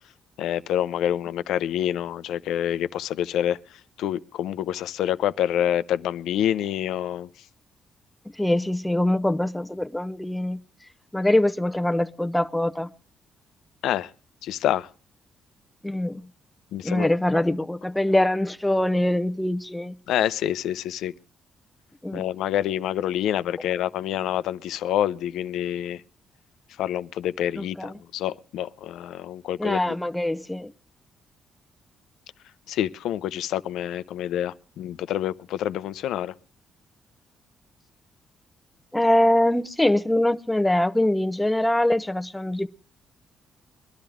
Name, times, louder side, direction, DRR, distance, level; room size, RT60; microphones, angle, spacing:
voice 1, 0.4-3.6 4.0-7.3 13.8-14.1 14.4-14.9 16.7-17.1 20.1-21.1 22.1-26.0 26.8-29.9 32.7-36.3, left 11 dB, 85° left, 0.7 m, -27 dB
voice 2, 8.4-10.6 11.1-12.9 15.8-16.2 16.8-19.9 22.0-22.3 27.6-27.9 29.6-30.7 38.9-42.7, left 1 dB, 5° left, 0.8 m, -23 dB
22.5 x 12.0 x 3.6 m
cardioid pair, 90°, 0 cm